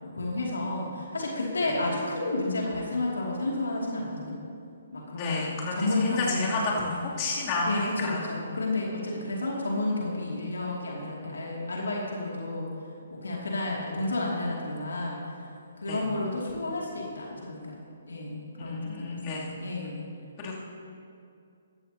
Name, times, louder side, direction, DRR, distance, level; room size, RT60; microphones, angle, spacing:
voice 1, 0.0-4.3 4.9-6.9 7.6-12.7 13.1-15.2 15.8-17.6 18.1-20.0, left 2 dB, 80° left, -3 dB, 2.7 m, -31 dB
voice 2, 5.1-8.3 13.8-13.9 15.9-16.0 18.6-19.5 20.4-20.6, left 3 dB, 35° left, -6 dB, 3.1 m, -31 dB
15.5 x 13.0 x 2.9 m, 2.4 s
figure-of-eight pair, 140°, 0 cm